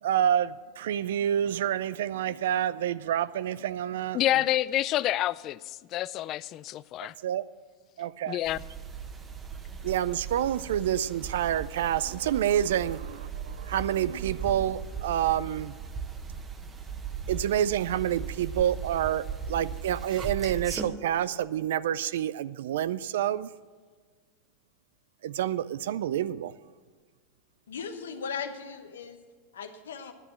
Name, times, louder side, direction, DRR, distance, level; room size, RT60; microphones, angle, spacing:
voice 1, 0.0-4.2 7.0-7.4 8.0-8.4 9.8-15.8 17.3-23.5 25.2-26.5, right 10 dB, 80° right, 0.3 m, -28 dB
voice 2, 4.1-5.6 5.9-7.1 8.3-8.6, left 14 dB, 45° left, 0.3 m, -28 dB
sound 1, 8.4-20.9, right 6 dB, 25° right, 1.1 m, -38 dB
voice 3, 27.7-29.2 29.5-30.1, left 6 dB, 90° left, 1.1 m, -37 dB
9.8 x 8.9 x 7.3 m
hypercardioid pair, 105°, 0 cm